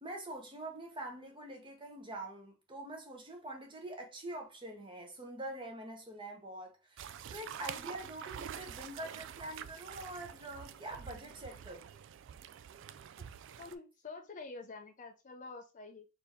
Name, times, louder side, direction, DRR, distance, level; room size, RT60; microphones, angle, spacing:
voice 1, 0.0-11.9, right 1 dB, 25° right, 1.1 m, -45 dB
sound 1, 7.0-13.8, right 9 dB, 65° right, 0.3 m, -47 dB
voice 2, 13.6-16.1, left 3 dB, 40° left, 0.5 m, -48 dB
4.3 x 2.8 x 3.5 m
head